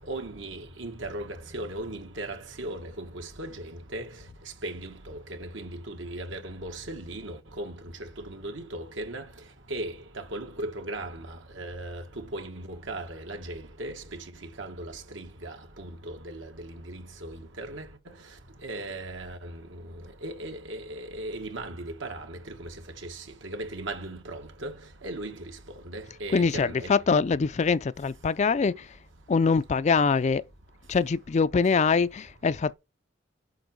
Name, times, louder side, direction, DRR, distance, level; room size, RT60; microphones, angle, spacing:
voice 1, 0.1-4.1 4.6-9.3 9.7-17.9 18.6-19.8 20.2-22.8 23.0-24.8 25.0-25.5 25.9-27.0, right 1 dB, 80° right, 1.7 m, -38 dB
voice 2, 26.3-28.9 29.3-30.4 30.9-32.7, left 5 dB, 35° left, 0.4 m, -24 dB
7.9 x 6.0 x 4.7 m
head